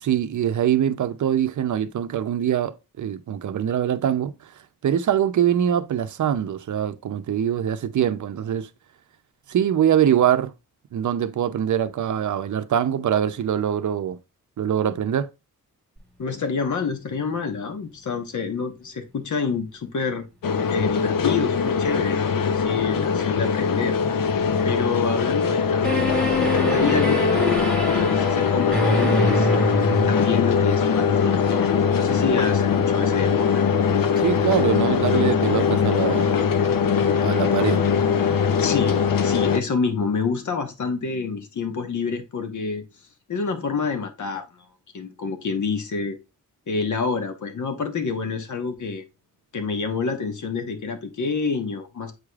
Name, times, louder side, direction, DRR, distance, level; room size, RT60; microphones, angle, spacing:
voice 1, 0.0-4.5 4.8-8.7 9.5-10.5 10.9-14.2 14.6-15.3 34.2-36.4 37.2-37.8, right 9 dB, 60° right, 0.6 m, -23 dB
voice 2, 16.2-20.2 20.7-24.0 24.6-26.2 26.7-27.3 27.9-29.5 30.0-33.6 38.6-42.8 43.3-44.6 44.9-46.2 46.7-49.0 49.5-52.1, left 5 dB, 60° left, 1.2 m, -27 dB
sound 1, 20.4-39.6, left 6 dB, 80° left, 0.8 m, -21 dB
sound 2, 25.8-30.5, equal, 5° left, 1.8 m, -24 dB
8.0 x 4.9 x 2.4 m
wide cardioid pair, 145°, 33 cm